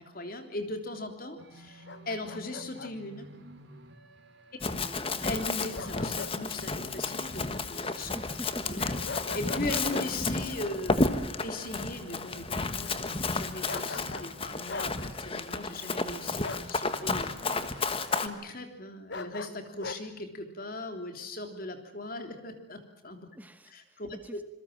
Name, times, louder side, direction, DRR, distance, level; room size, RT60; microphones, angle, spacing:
voice 1, 0.0-3.3 5.2-8.1 8.7-23.3 23.7-24.2, left 2 dB, 50° left, 6 dB, 3.4 m, -39 dB
sound 1, 1.4-18.2, right 1 dB, 75° right, 4.4 m, -51 dB
Bark, 1.9-2.9 5.8-6.4 6.7-6.9 9.1-10.1 13.7-14.3 14.7-14.9 16.4-16.7 19.1-20.0, left 3 dB, 65° left, 1.2 m, -40 dB
Run, 4.6-18.3, left 3 dB, 30° left, 1.4 m, -32 dB
voice 2, 4.6-5.1 8.1-8.8 9.9-10.1 23.3-24.4, equal, 10° right, 9 dB, 1.1 m, -45 dB
27.0 x 22.0 x 7.5 m, 0.78 s
head